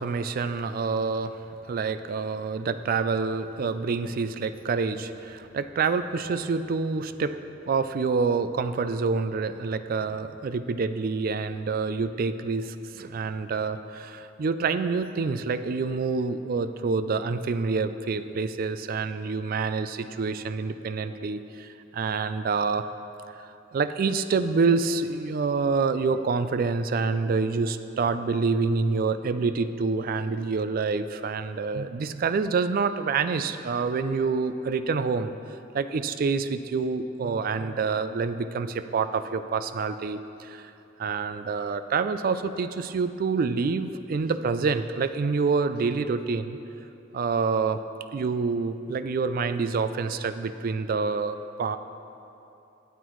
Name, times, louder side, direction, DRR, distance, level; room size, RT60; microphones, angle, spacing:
voice 1, 0.0-1.4 1.7-7.4 7.7-22.9 23.4-35.3 35.7-40.7 41.0-46.6 47.1-47.8 48.1-51.8, right 4 dB, 45° right, 11 dB, 0.3 m, -27 dB
12.5 x 8.1 x 3.1 m, 2.9 s
head